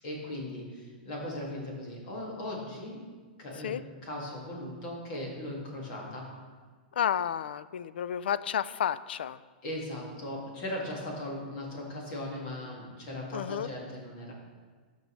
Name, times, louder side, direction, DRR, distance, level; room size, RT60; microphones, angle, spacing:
voice 1, 0.0-3.0 3.4-6.3 9.6-14.3, left 1 dB, 35° left, -3 dB, 2.1 m, -38 dB
voice 2, 6.9-9.4 13.3-13.7, left 9 dB, 90° left, 16 dB, 0.3 m, -31 dB
13.0 x 5.3 x 3.2 m, 1.5 s
supercardioid pair, 170°, 5 cm